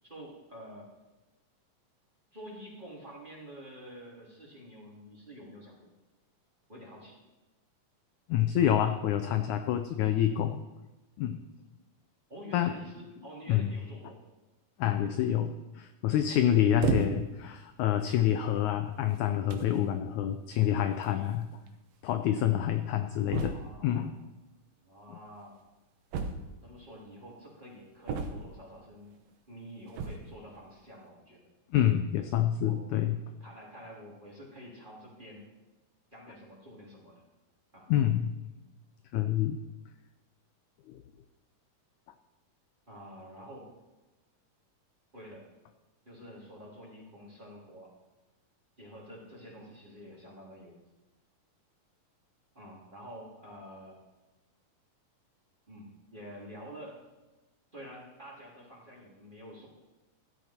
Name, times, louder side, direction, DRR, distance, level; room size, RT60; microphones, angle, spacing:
voice 1, 0.0-0.9 2.3-5.9 6.7-7.2 12.3-14.2 23.1-24.1 24.8-25.6 26.6-29.2 29.5-31.4 32.6-32.8 33.4-35.5 36.1-37.2 37.7-37.9 42.9-43.7 45.1-45.5 46.0-47.9 48.8-50.8 52.5-54.0 55.7-57.0 57.7-59.8, equal, 15° right, -4 dB, 2.9 m, -48 dB
voice 2, 8.3-10.6 11.2-11.4 12.5-12.7 13.5-13.7 14.8-21.5 22.0-23.5 23.8-24.1 31.7-33.2 37.9-38.4 39.1-39.6 40.9-41.0, left 11 dB, 75° left, 8 dB, 1.8 m, -27 dB
sound 1, 16.8-17.4 18.2-18.3 19.1-19.2 19.5-19.8 21.0-21.1 21.3-21.4 21.7-21.8 23.3-23.8 26.1-26.8 28.1-28.7 29.9-30.4, right 5 dB, 65° right, 1.7 m, -33 dB
15.0 x 12.0 x 4.4 m, 1.1 s
omnidirectional pair, 3.9 m